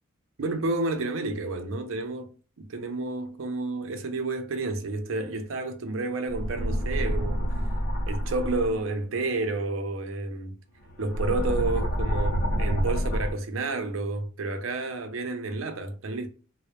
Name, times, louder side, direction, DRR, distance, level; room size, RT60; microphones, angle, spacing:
voice 1, 0.4-2.3 2.6-7.4 8.1-10.6 11.0-16.3, right 2 dB, 85° right, 0.5 m, -30 dB
sound 1, 6.3-8.7 10.8-13.3, equal, 50° left, 0.6 m, -28 dB
2.1 x 2.1 x 2.8 m
head